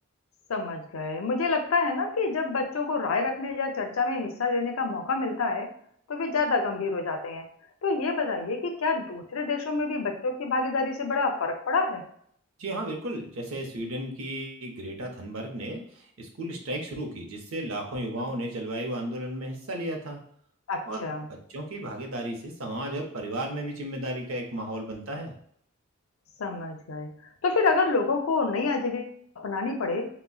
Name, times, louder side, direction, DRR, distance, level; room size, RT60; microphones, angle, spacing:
voice 1, 0.5-5.7 6.1-7.4 7.8-12.0 18.2-18.3 20.7-21.3 26.4-27.1 27.4-30.1, left 3 dB, 90° left, 4 dB, 0.6 m, -27 dB
voice 2, 12.6-20.2 20.9-21.1 21.5-25.3, right 1 dB, 80° right, 3 dB, 0.7 m, -34 dB
3.9 x 2.1 x 2.3 m, 0.64 s
head